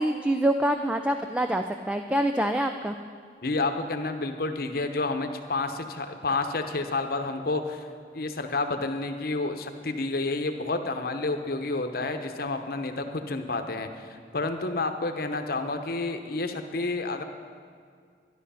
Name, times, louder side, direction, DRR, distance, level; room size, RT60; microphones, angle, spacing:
voice 1, 0.0-2.9, right 1 dB, 5° right, 6 dB, 0.3 m, -26 dB
voice 2, 3.4-7.9 8.1-17.2, left 3 dB, 55° left, 7 dB, 0.9 m, -30 dB
12.5 x 11.0 x 5.6 m, 2.1 s
head